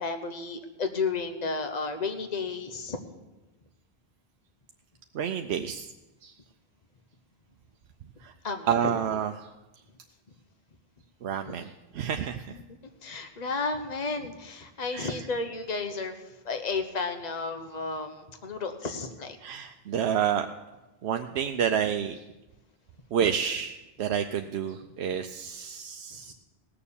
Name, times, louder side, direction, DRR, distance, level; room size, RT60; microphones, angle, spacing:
voice 1, 0.0-3.0 8.4-8.9 13.0-16.1 16.4-19.4, left 4 dB, 45° left, 7 dB, 1.1 m, -32 dB
voice 2, 5.1-5.9 6.2-6.3 8.2-8.3 8.7-9.5 11.2-12.6 14.9-15.3 19.4-20.5 21.0-22.2 23.1-26.3, right 8 dB, 90° right, 6 dB, 0.9 m, -29 dB
18.0 x 6.9 x 7.0 m, 1.1 s
omnidirectional pair, 1.1 m